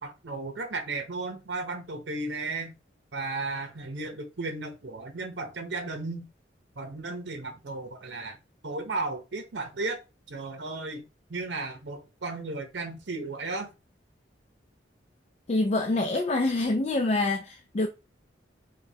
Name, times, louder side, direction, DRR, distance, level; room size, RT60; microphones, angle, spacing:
voice 1, 0.0-2.7 3.1-6.3 6.8-8.4 8.6-10.0 10.3-13.7, right 3 dB, 65° right, 0.8 m, -34 dB
voice 2, 15.5-17.9, left 2 dB, 35° left, 0.4 m, -26 dB
5.1 x 2.3 x 2.8 m
head